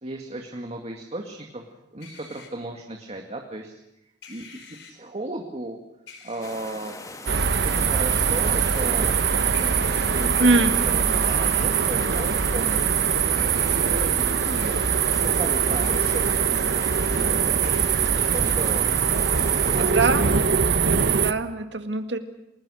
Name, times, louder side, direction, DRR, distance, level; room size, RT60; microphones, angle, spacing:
voice 1, 0.0-1.6 1.9-3.7 4.3-4.6 4.9-5.8 6.2-6.9 7.6-9.1 9.6-10.5 10.8-13.0 13.4-14.8 15.2-17.8 18.3-18.9 19.5-20.0, right 1 dB, 35° right, 2 dB, 2.2 m, -35 dB
sound 1, 2.0-2.5 4.2-4.9 6.1-6.5 8.4-8.9 9.5-10.9 11.3-11.8 13.4-13.9 14.6-14.7 15.8-16.2 17.6-18.0 19.4-19.8, left 5 dB, 80° left, 4.5 m, -46 dB
sound 2, 6.4-19.9, left 2 dB, 20° left, 2.1 m, -40 dB
sound 3, 7.3-21.3, right 6 dB, 70° right, 1.0 m, -22 dB
voice 2, 10.4-10.8 18.2-18.3 19.8-20.3 21.0-22.2, right 2 dB, 85° right, 8 dB, 2.1 m, -23 dB
29.5 x 20.5 x 6.5 m, 0.86 s
head